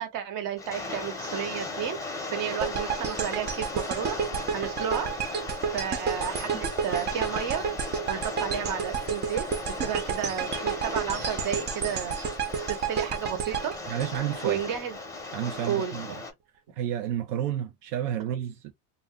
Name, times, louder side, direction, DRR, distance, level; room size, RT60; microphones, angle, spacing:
voice 1, 0.0-2.0 2.3-4.1 4.5-5.1 5.7-7.6 8.1-9.5 9.8-12.2 12.7-13.7 14.4-15.0 15.7-15.9, right 9 dB, 45° right, 1.2 m, -32 dB
Rain, 0.6-16.3, left 3 dB, 5° left, 0.8 m, -37 dB
sound 1, 2.6-14.8, right 6 dB, 25° right, 0.4 m, -31 dB
voice 2, 13.9-14.6 15.3-16.2 16.7-18.7, right 11 dB, 80° right, 0.6 m, -31 dB
2.3 x 2.2 x 3.5 m
supercardioid pair, 115°, 46 cm